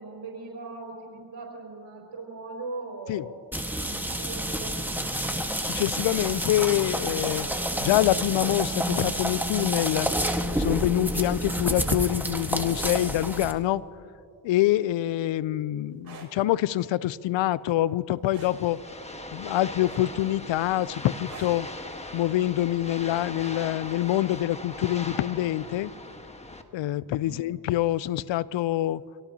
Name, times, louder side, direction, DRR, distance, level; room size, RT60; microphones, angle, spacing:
voice 1, 0.0-3.3 4.2-4.7 27.2-27.4, right 3 dB, 70° right, 4.9 m, -39 dB
sound 1, 3.5-13.5, right 1 dB, 5° right, 1.5 m, -29 dB
voice 2, 5.6-7.5 7.8-10.1 10.5-13.8 14.4-18.8 19.3-21.7 22.1-25.9 26.7-29.0, left 14 dB, 80° left, 0.6 m, -25 dB
sound 2, 15.9-16.3 18.3-18.6 19.9-20.3 21.3-21.6 23.0-23.2, right 5 dB, 50° right, 4.1 m, -45 dB
sound 3, 18.4-26.6, left 2 dB, 15° left, 1.3 m, -40 dB
26.0 x 17.5 x 2.8 m
cardioid pair, 65°, 44 cm